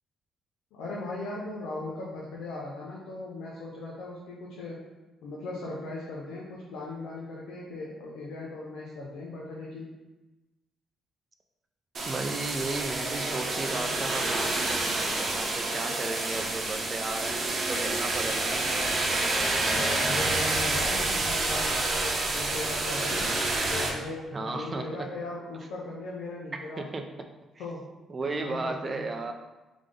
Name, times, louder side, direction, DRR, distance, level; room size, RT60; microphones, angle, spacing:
voice 1, 0.7-4.8 5.2-9.9 19.7-23.4 23.7-26.8 27.6-27.9 28.2-29.0, left 2 dB, 90° left, -5 dB, 0.7 m, -38 dB
sound 1, 11.9-23.9, right 2 dB, 50° right, 0.9 m, -28 dB
voice 2, 12.0-18.6 24.3-25.1 26.8-27.3 28.1-29.3, right 3 dB, 35° right, 4 dB, 0.5 m, -35 dB
3.5 x 3.4 x 3.8 m, 1.1 s
cardioid pair, 90°, 0 cm